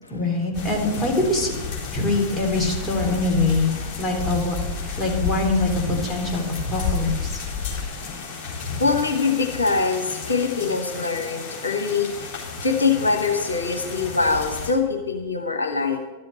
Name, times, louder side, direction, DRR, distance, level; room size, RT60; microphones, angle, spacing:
voice 1, 0.1-1.5 1.9-3.7 4.0-4.5 5.0-6.4 6.7-7.4, left 2 dB, 10° left, -2 dB, 3.7 m, -23 dB
sound 1, 0.5-14.7, left 5 dB, 35° left, 4.1 m, -31 dB
voice 2, 8.8-12.3 12.6-16.0, left 4 dB, 75° left, 4 dB, 1.1 m, -23 dB
12.5 x 7.6 x 7.6 m, 1.2 s
figure-of-eight pair, 90°, 0 cm